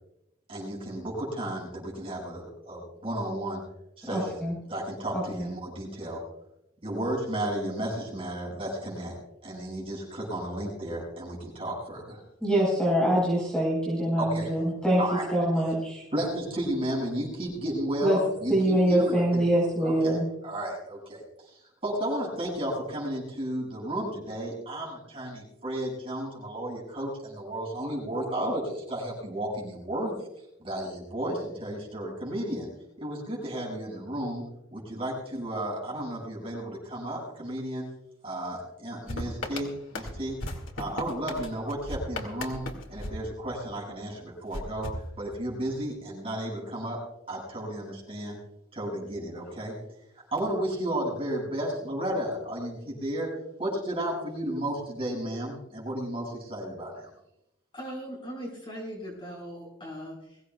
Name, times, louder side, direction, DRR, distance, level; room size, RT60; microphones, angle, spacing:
voice 1, 0.5-3.6 4.0-6.2 6.8-9.2 9.4-12.2 14.2-14.5 15.0-15.3 16.1-19.4 19.8-20.2 20.4-21.2 21.8-30.1 30.6-32.7 33.0-37.9 38.2-40.4 40.8-47.0 47.3-48.4 48.7-49.8 50.3-53.3 53.6-57.1, right 1 dB, 30° right, -4 dB, 7.2 m, -33 dB
voice 2, 4.1-4.5 5.1-5.5 12.4-15.0 15.3-16.0 18.0-18.2 18.5-20.2, right 1 dB, 5° left, -6 dB, 4.3 m, -24 dB
sound 1, 39.1-43.9 44.5-45.7, left 1 dB, 80° left, 2.2 m, -37 dB
voice 3, 57.7-60.4, equal, 25° left, -2 dB, 4.8 m, -39 dB
22.0 x 16.5 x 2.4 m, 0.83 s
head